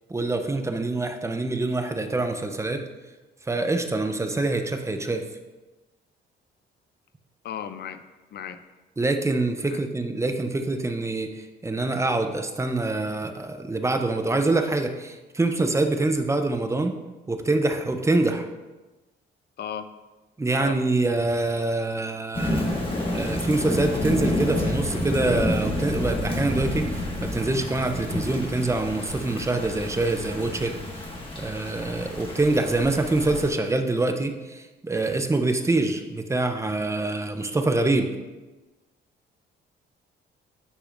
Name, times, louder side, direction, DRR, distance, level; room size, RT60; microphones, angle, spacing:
voice 1, 0.1-2.8 3.5-5.2 9.0-11.3 11.6-16.9 17.3-18.5 20.4-22.7 23.1-30.7 31.4-38.1, right 2 dB, 15° right, 6 dB, 0.6 m, -25 dB
voice 2, 7.4-8.0 8.3-8.6 9.7-9.8 19.6-19.9 20.5-20.8, left 8 dB, 55° left, 11 dB, 0.5 m, -34 dB
Thunder / Rain, 22.3-33.5, left 1 dB, 25° left, 1.6 m, -29 dB
9.9 x 4.8 x 2.5 m, 1.2 s
cardioid pair, 90°, 20 cm